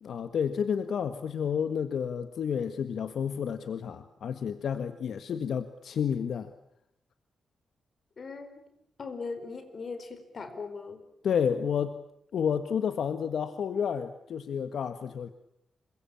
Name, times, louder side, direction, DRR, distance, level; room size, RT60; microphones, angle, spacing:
voice 1, 0.0-6.5 11.2-12.0 12.3-15.3, left 7 dB, 70° left, 9 dB, 1.5 m, -30 dB
voice 2, 8.2-8.6 9.0-11.0, left 4 dB, 40° left, 8 dB, 4.6 m, -39 dB
27.5 x 24.0 x 8.7 m, 0.75 s
wide cardioid pair, 160°, 0 cm